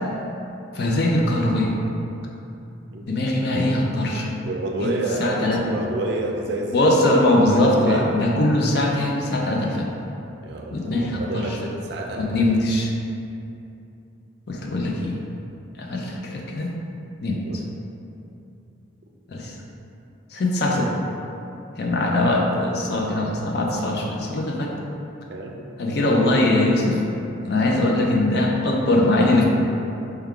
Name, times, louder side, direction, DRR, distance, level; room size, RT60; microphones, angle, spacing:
voice 1, 0.7-1.7 3.1-4.3 4.8-4.9 5.2-5.6 6.7-9.9 10.7-11.5 12.2-12.9 14.5-15.1 15.8-16.7 17.2-17.4 19.3-19.5 20.3-20.9 21.8-24.7 25.8-27.0 27.5-29.4, left 1 dB, 55° left, -1 dB, 0.5 m, -21 dB
voice 2, 2.9-3.2 4.4-6.9 7.5-8.2 10.4-12.7 17.3-17.6 25.3-25.6, right 2 dB, 55° right, 1 dB, 0.4 m, -29 dB
4.5 x 2.3 x 3.6 m, 2.8 s
head